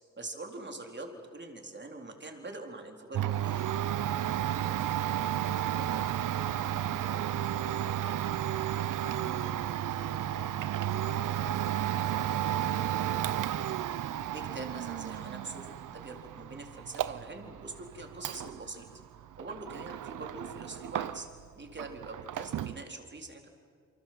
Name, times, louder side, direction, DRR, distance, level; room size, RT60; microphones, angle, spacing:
voice 1, 0.2-3.6 9.2-9.6 14.3-18.9 19.4-21.3 21.6-23.5, right 2 dB, 35° right, 3 dB, 4.2 m, -44 dB
Domestic sounds home sounds, 3.1-21.5 21.7-22.8, right 11 dB, 80° right, 0.7 m, -33 dB
voice 2, 4.7-5.1 5.4-8.4 9.0-11.8 12.2-13.6, left 2 dB, 45° left, 3 dB, 5.7 m, -52 dB
28.0 x 24.5 x 7.8 m, 2.2 s
cardioid pair, 65°, 31 cm